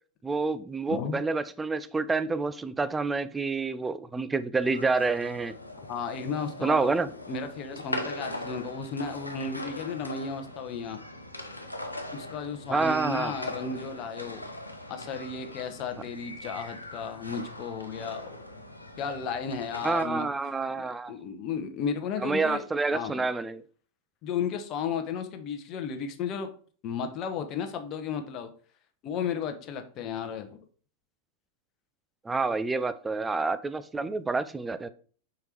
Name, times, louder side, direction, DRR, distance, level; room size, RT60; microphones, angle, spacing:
voice 1, 0.2-5.5 6.6-7.1 12.7-13.3 19.8-21.1 22.2-23.6 32.3-34.9, right 3 dB, 10° right, 0.4 m, -28 dB
voice 2, 0.9-1.2 5.9-7.0 7.3-11.0 12.1-14.5 14.9-18.2 19.0-20.3 20.8-22.6 22.9-23.3 24.2-26.5 26.8-28.5 29.0-30.6, left 6 dB, 35° left, 0.9 m, -34 dB
sound 1, 4.6-20.0, left 1 dB, 85° left, 0.8 m, -41 dB
5.2 x 4.6 x 4.4 m
figure-of-eight pair, 90°, 0 cm